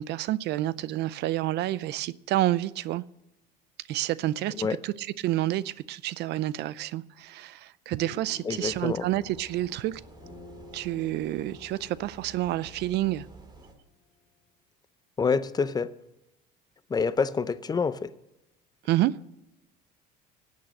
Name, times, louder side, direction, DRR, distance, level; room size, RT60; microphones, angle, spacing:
voice 1, 0.0-3.0 3.9-10.0 10.7-13.3 18.9-19.2, right 15 dB, 60° right, 0.5 m, -29 dB
sound 1, 8.0-14.0, left 4 dB, 50° left, 3.7 m, -51 dB
voice 2, 8.5-9.0 15.2-15.9 16.9-18.1, left 5 dB, 20° left, 0.6 m, -27 dB
sound 2, 8.6-13.7, right 2 dB, 20° right, 2.2 m, -51 dB
17.5 x 8.4 x 6.4 m
cardioid pair, 125°, 20 cm